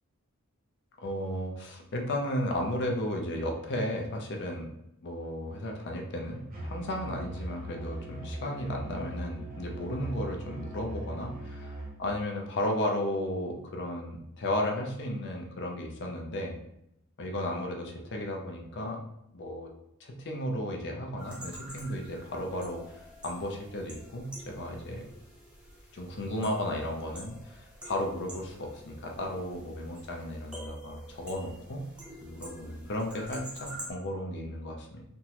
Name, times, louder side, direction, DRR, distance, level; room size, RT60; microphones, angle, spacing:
voice 1, 1.0-4.7 5.0-16.5 17.2-19.0 19.3-19.7 20.0-23.0 23.2-25.0 25.9-31.8 32.2-35.0, left 1 dB, 50° left, 1 dB, 0.5 m, -34 dB
Musical instrument, 6.5-12.0, right 1 dB, 40° right, 0.8 m, -40 dB
sound 1, 21.2-33.9, equal, 5° right, 0.6 m, -47 dB
3.4 x 2.0 x 2.9 m, 0.83 s
head